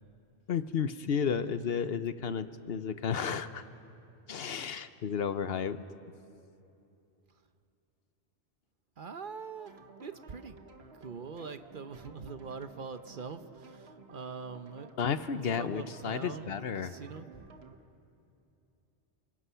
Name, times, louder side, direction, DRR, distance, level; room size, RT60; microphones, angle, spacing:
voice 1, 0.5-3.6 4.3-5.8 15.0-16.9, left 7 dB, 65° left, 12 dB, 1.0 m, -32 dB
voice 2, 9.0-10.6 11.0-14.9 15.6-17.4, right 5 dB, 50° right, 10 dB, 0.9 m, -43 dB
sound 1, 9.6-17.8, right 4 dB, 70° right, 1.5 m, -54 dB
28.5 x 25.5 x 5.7 m, 2.7 s
omnidirectional pair, 1.1 m